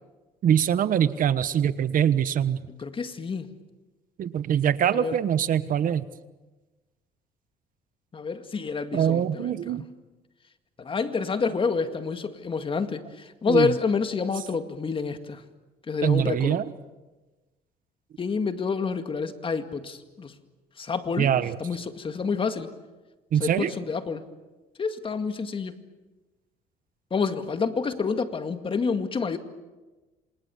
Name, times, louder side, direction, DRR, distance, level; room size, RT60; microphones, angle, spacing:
voice 1, 0.4-2.6 4.2-6.0 8.9-9.8 13.5-13.7 16.0-16.6 21.2-21.6 23.3-23.7, right 9 dB, 55° right, 1.2 m, -23 dB
voice 2, 2.7-3.5 4.9-5.2 8.1-9.7 10.8-15.4 15.9-16.6 18.2-20.3 20.8-21.3 21.6-22.7 23.4-24.2 24.8-25.7 27.1-29.4, left 5 dB, 30° left, 2.1 m, -28 dB
27.5 x 27.0 x 7.1 m
cardioid pair, 110°, 17 cm